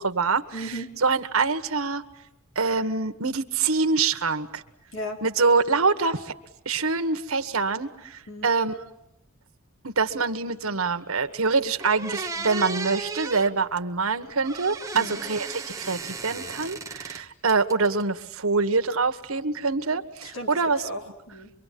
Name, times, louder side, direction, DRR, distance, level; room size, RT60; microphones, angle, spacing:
voice 1, 0.0-0.4 1.0-2.0 2.5-4.6 5.2-6.3 6.6-8.7 9.8-20.8, right 4 dB, 85° right, 8 dB, 1.6 m, -25 dB
voice 2, 0.5-0.9 4.9-5.2 8.3-8.5 14.9-15.2 20.2-21.5, equal, 70° left, 2 dB, 4.4 m, -36 dB
sound 1, 11.3-11.4 11.8-13.5 14.4-17.2 17.5-18.2, right 4 dB, 15° right, 1.2 m, -35 dB
24.5 x 24.5 x 9.4 m, 0.82 s
head